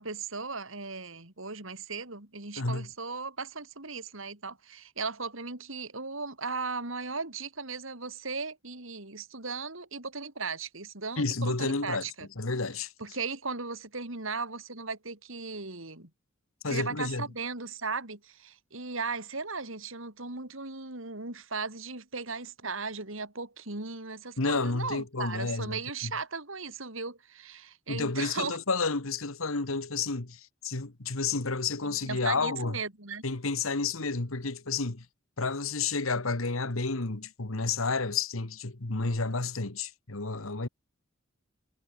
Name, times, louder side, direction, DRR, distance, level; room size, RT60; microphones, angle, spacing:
voice 1, 0.0-12.3 13.0-16.1 16.7-28.6 31.8-33.2, right 4 dB, 70° right, 4.0 m, -37 dB
voice 2, 2.6-2.9 11.2-12.0 12.4-12.9 16.6-17.3 24.4-26.1 27.9-32.8 33.2-35.0 35.4-40.7, left 3 dB, 80° left, 1.7 m, -31 dB
head